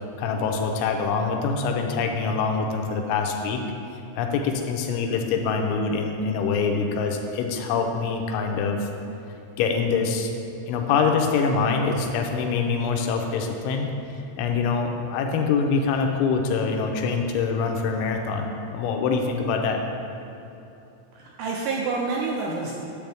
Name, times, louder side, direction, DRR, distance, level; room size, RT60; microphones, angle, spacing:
voice 1, 0.2-3.6 4.2-8.9 9.6-10.3 10.7-13.9 14.4-19.8, left 5 dB, 85° left, 3 dB, 3.0 m, -24 dB
voice 2, 21.1-22.7, right 4 dB, 80° right, -2 dB, 2.4 m, -28 dB
10.5 x 8.1 x 3.5 m, 2.9 s
omnidirectional pair, 5.5 m